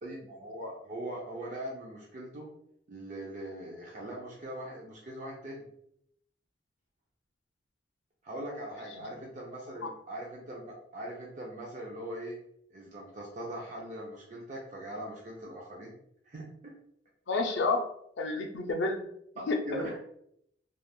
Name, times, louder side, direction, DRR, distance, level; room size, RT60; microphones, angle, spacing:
voice 1, 0.0-2.5 2.9-5.7 8.2-12.4 12.7-16.0 16.3-16.7 19.4-20.0, right 1 dB, 40° right, -3 dB, 0.4 m, -41 dB
voice 2, 17.3-17.9 18.2-19.0 19.5-19.8, left 3 dB, 70° left, 4 dB, 0.4 m, -29 dB
3.3 x 2.3 x 2.2 m, 0.74 s
head